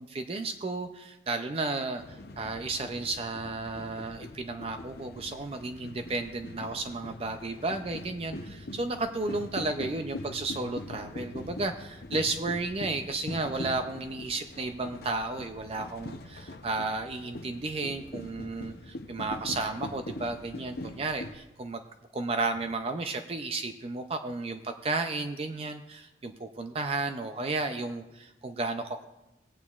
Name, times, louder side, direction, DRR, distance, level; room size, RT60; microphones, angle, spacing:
voice 1, 0.1-21.8 22.1-29.1, right 3 dB, 30° right, 7 dB, 0.4 m, -33 dB
sound 1, 2.0-21.4, left 2 dB, 55° left, 0.6 m, -42 dB
17.0 x 8.9 x 2.4 m, 0.98 s
head